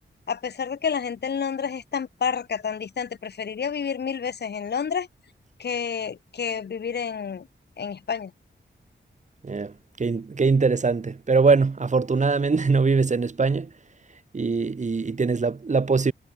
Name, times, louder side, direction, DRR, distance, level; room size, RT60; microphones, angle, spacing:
voice 1, 0.3-5.1 5.6-7.5 7.8-8.3, left 6 dB, 60° left, 0.8 m, -29 dB
voice 2, 9.4-13.7 14.3-16.1, right 4 dB, 40° right, 1.5 m, -22 dB
wide cardioid pair, 120°, 19 cm